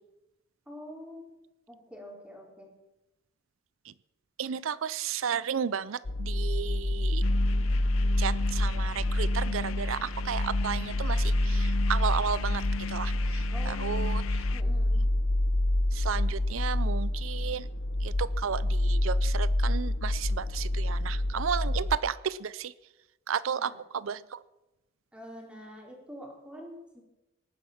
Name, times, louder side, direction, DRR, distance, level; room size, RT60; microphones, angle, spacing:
voice 1, 0.7-1.3 1.7-2.7 13.5-14.0 14.5-15.0 23.6-23.8 24.1-24.2 25.1-27.0, equal, 5° right, 0 dB, 3.9 m, -46 dB
voice 2, 4.4-7.2 8.2-14.4 15.9-17.7 18.0-22.7 23.3-24.4, right 7 dB, 70° right, 18 dB, 0.5 m, -33 dB
sound 1, 6.0-22.0, left 1 dB, 70° left, 0.9 m, -28 dB
sound 2, 7.2-14.6, left 4 dB, 90° left, 0.5 m, -38 dB
18.5 x 10.0 x 7.1 m, 0.96 s
head